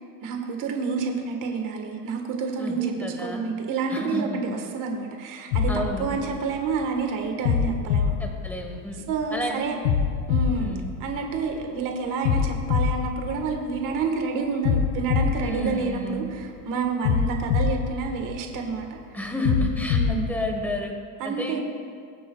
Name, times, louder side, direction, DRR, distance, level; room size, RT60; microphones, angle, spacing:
voice 1, 0.2-2.9 3.2-8.2 9.1-9.8 10.3-10.7 11.0-18.9 19.9-20.2 21.2-21.6, right 5 dB, 40° right, 3 dB, 1.4 m, -29 dB
voice 2, 2.6-3.4 3.9-4.4 5.7-6.1 8.2-9.0 9.3-9.6 10.6-10.9 15.4-16.2 19.1-20.9 21.2-21.6, equal, 5° left, 2 dB, 1.1 m, -31 dB
sound 1, 5.5-6.8 7.4-9.2 9.8-11.6 12.2-14.0 14.6-16.4 17.0-18.8 19.4-20.8, left 7 dB, 85° left, 1.2 m, -26 dB
22.0 x 8.3 x 2.3 m, 2.1 s
supercardioid pair, 150°, 49 cm